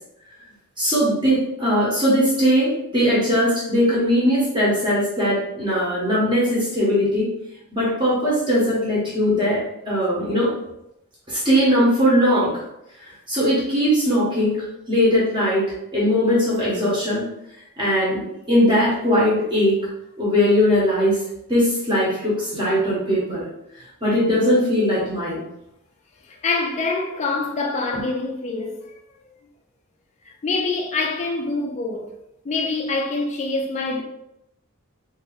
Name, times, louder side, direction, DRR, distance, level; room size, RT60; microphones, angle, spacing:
voice 1, 0.8-7.3 7.7-10.5 11.3-12.6 13.3-14.6 14.9-15.6 15.9-17.3 17.8-18.2 18.5-19.8 20.2-21.2 21.5-23.4 24.0-25.4, equal, 20° right, 1.2 m, -20 dB
voice 2, 26.3-28.9 30.3-32.1 32.4-34.0, left 3 dB, 30° left, 0.3 m, -25 dB
2.9 x 2.7 x 4.0 m
head